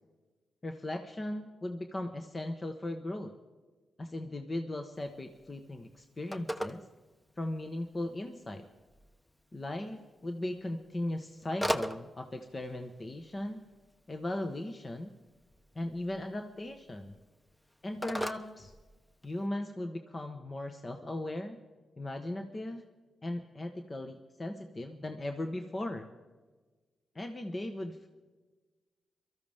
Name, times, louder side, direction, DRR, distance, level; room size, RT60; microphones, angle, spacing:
voice 1, 0.6-3.3 4.0-6.8 7.4-8.6 9.5-13.6 14.1-15.1 15.7-17.2 17.8-18.7 19.2-21.6 22.0-22.8 23.2-26.1 27.1-28.1, left 1 dB, 35° left, 5 dB, 1.3 m, -38 dB
Telephone, 5.0-19.5, equal, 10° left, 1.1 m, -42 dB
23.0 x 14.0 x 3.6 m, 1.3 s
supercardioid pair, 45°, 0 cm